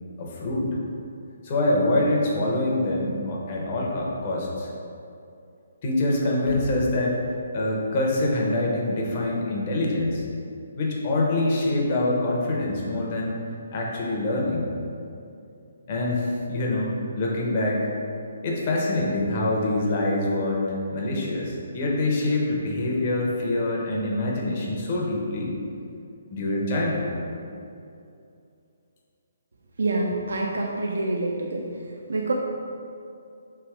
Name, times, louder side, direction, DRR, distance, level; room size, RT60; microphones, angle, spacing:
voice 1, 0.2-0.7 1.4-4.7 5.8-7.2 7.5-10.2 10.8-13.4 13.7-14.7 15.9-17.9 18.4-25.5 26.3-27.1, left 2 dB, 40° left, -3 dB, 0.9 m, -25 dB
voice 2, 29.8-31.6 32.1-32.3, right 2 dB, 80° right, -1 dB, 0.4 m, -26 dB
3.4 x 2.9 x 4.6 m, 2.6 s
hypercardioid pair, 150°, 0 cm